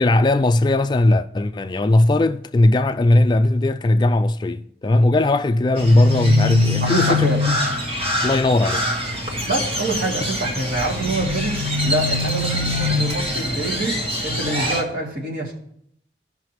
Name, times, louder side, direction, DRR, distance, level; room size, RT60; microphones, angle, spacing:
voice 1, 0.0-7.3 8.2-8.9, left 2 dB, 25° left, 0.3 m, -18 dB
Crow, 5.7-14.8, left 2 dB, 30° right, 1.5 m, -24 dB
voice 2, 6.8-7.4 9.5-15.5, right 2 dB, 55° right, 2.6 m, -26 dB
16.5 x 5.7 x 3.1 m
head